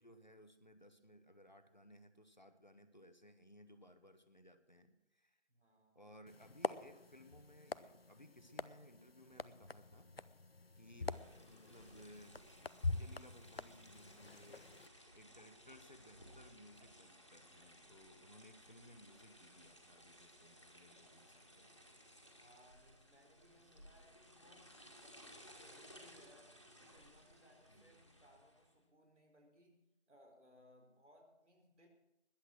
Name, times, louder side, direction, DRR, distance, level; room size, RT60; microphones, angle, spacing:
voice 1, 0.0-5.4 5.9-10.1 10.7-12.4 12.8-14.7 15.1-21.8 27.7-27.9, equal, 40° left, 10 dB, 1.1 m, -61 dB
voice 2, 5.5-6.2 22.3-31.9, equal, 80° right, 2 dB, 4.6 m, -67 dB
sound 1, 6.3-14.9, left 3 dB, 60° left, 0.6 m, -45 dB
sound 2, 11.0-28.7, equal, 25° left, 1.8 m, -61 dB
20.5 x 8.4 x 6.1 m, 0.89 s
figure-of-eight pair, 180°, 35 cm